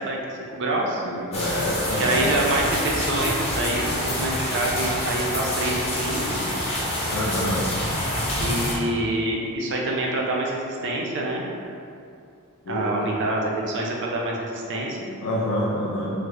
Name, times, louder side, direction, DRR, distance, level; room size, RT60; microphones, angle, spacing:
voice 1, 0.0-1.0 2.0-6.4 8.4-11.5 12.7-15.1, right 1 dB, 55° right, -1 dB, 0.5 m, -26 dB
voice 2, 1.0-2.3 7.1-7.7 12.7-12.9 15.2-16.1, left 1 dB, 90° left, -6 dB, 0.5 m, -27 dB
sound 1, 1.3-8.7, left 1 dB, 30° left, 0.6 m, -27 dB
3.2 x 2.0 x 3.6 m, 2.5 s
head